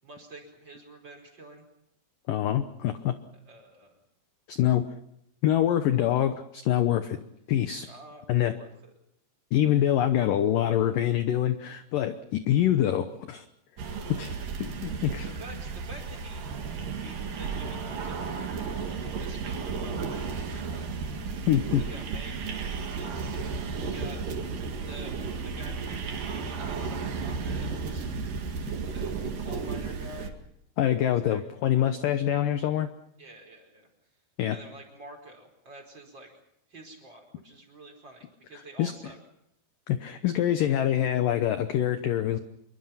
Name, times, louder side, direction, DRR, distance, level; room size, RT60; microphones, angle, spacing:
voice 1, 0.0-1.7 3.3-4.0 7.6-8.2 8.5-8.9 15.2-16.5 17.0-20.9 21.7-22.4 22.7-23.4 23.8-24.2 24.8-25.2 25.4-28.2 28.9-29.1 29.4-30.3 31.0-31.4 33.2-33.9 34.5-36.3 36.7-39.2, right 2 dB, 25° right, 2 dB, 5.0 m, -48 dB
voice 2, 2.3-3.1 4.5-4.9 5.4-7.2 7.5-7.9 8.3-8.5 9.5-13.5 14.1-15.3 21.5-21.8 30.8-32.9 34.4-34.6 38.8-38.9 39.9-42.4, left 11 dB, 75° left, 9 dB, 2.0 m, -25 dB
sound 1, 13.8-30.3, right 5 dB, 55° right, 3.4 m, -33 dB
26.5 x 23.5 x 5.8 m, 0.77 s
omnidirectional pair, 5.2 m